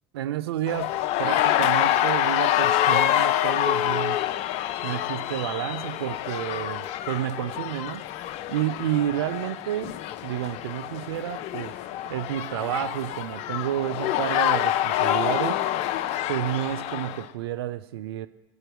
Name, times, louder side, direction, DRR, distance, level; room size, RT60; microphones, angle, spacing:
voice 1, 0.1-4.2 4.8-8.1 8.5-10.0 10.2-11.8 12.0-15.6 16.3-18.3, right 12 dB, 80° right, 12 dB, 0.5 m, -30 dB
sound 1, 0.7-17.2, left 12 dB, 55° left, 0.6 m, -26 dB
21.0 x 7.7 x 4.6 m, 1.1 s
hypercardioid pair, 75°, 13 cm